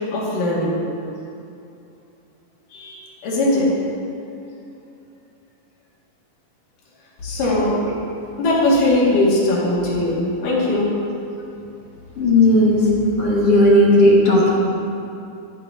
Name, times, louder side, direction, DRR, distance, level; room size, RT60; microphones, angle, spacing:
voice 1, 0.1-0.8 2.7-3.7 7.2-7.8 8.4-10.9, left 1 dB, 85° left, -6 dB, 3.8 m, -19 dB
voice 2, 12.2-12.8 13.2-14.5, left 1 dB, 50° left, -6 dB, 2.8 m, -14 dB
14.5 x 12.5 x 2.8 m, 2.7 s
omnidirectional pair, 3.7 m